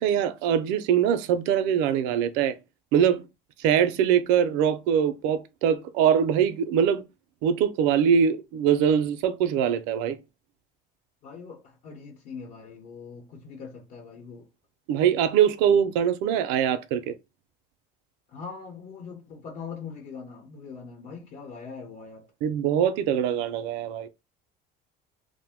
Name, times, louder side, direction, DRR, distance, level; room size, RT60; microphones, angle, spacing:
voice 1, 0.0-2.6 2.9-3.2 3.6-7.0 7.4-10.2 14.9-17.1 22.4-24.1, right 8 dB, 75° right, 0.5 m, -23 dB
voice 2, 11.2-14.5 18.3-22.3, left 5 dB, 50° left, 0.9 m, -41 dB
2.5 x 2.1 x 3.5 m
cardioid pair, 155°, 19 cm